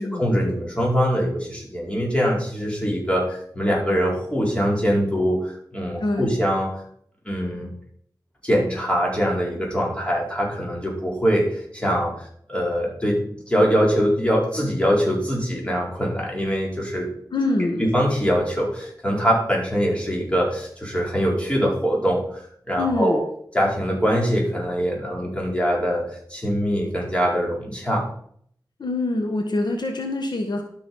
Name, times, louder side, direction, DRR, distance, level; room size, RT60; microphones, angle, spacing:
voice 1, 0.0-6.7 7.2-7.7 8.4-17.1 17.4-17.5 17.8-23.2 23.5-28.1, equal, 15° left, -3 dB, 4.8 m, -23 dB
voice 2, 6.0-6.4 17.3-17.9 22.8-23.2 28.8-30.6, left 2 dB, 75° left, 4 dB, 1.4 m, -25 dB
12.5 x 6.2 x 5.6 m, 0.65 s
wide cardioid pair, 75°, 8 cm